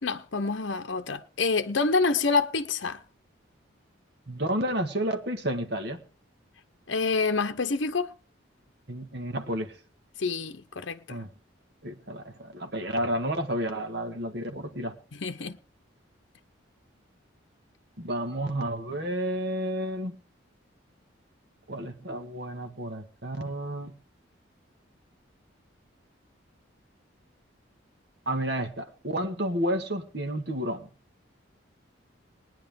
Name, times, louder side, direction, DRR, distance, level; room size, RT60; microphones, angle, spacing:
voice 1, 0.0-3.0 6.9-8.1 10.2-11.2 15.2-15.6, left 4 dB, 70° left, 0.8 m, -27 dB
voice 2, 4.3-6.0 8.9-9.8 11.1-11.3 11.8-14.9 18.0-20.2 21.7-23.9 28.2-30.9, right 1 dB, 55° right, 1.6 m, -31 dB
20.0 x 9.9 x 3.6 m
head